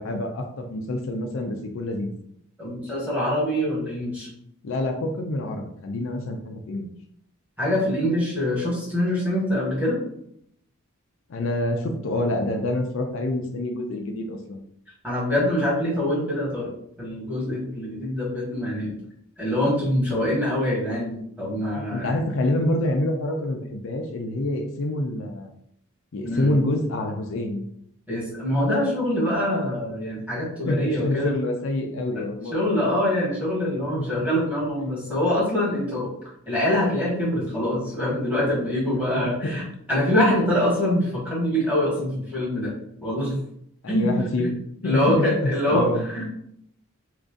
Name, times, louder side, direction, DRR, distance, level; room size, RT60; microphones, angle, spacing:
voice 1, 0.0-2.1 4.6-6.9 11.3-14.6 21.9-25.5 26.1-27.6 30.6-32.8 33.9-34.1 38.9-39.6 43.8-44.5 44.8-46.0, left 1 dB, 60° left, 3 dB, 0.4 m, -27 dB
voice 2, 2.6-4.3 7.6-10.0 15.0-16.7 17.0-19.0 19.4-22.2 26.2-26.5 28.1-31.4 32.1-32.2 32.5-36.1 36.5-39.6 39.9-42.7 43.0-43.4 43.9-44.1 44.4-44.5 44.8-46.3, left 1 dB, 5° right, -7 dB, 1.3 m, -24 dB
3.0 x 2.5 x 3.6 m, 0.71 s
head